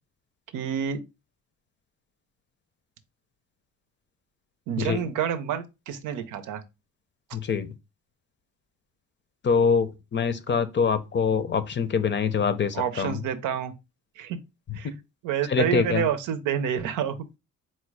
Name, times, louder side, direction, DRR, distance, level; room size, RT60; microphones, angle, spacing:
voice 1, 0.5-1.0 4.7-6.6 12.7-13.7 14.2-14.4 14.7-14.9 15.2-17.2, right 8 dB, 85° right, 0.6 m, -28 dB
voice 2, 7.3-7.7 9.4-13.2 14.8-14.9 15.5-16.0, left 6 dB, 40° left, 0.6 m, -24 dB
4.3 x 2.1 x 4.6 m
cardioid pair, 90°, 30 cm